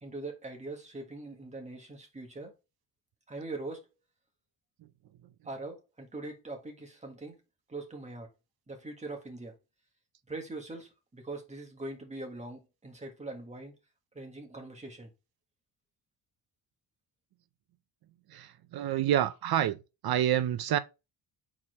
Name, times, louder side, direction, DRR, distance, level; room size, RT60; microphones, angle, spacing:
voice 1, 0.0-2.5 3.3-3.8 5.4-7.4 7.7-8.3 8.7-9.5 10.3-13.7 14.1-15.1, right 2 dB, 15° right, 1.5 m, -42 dB
voice 2, 18.3-19.8 20.0-20.8, right 11 dB, 55° right, 0.6 m, -28 dB
4.8 x 4.3 x 4.7 m
cardioid pair, 175°, 46 cm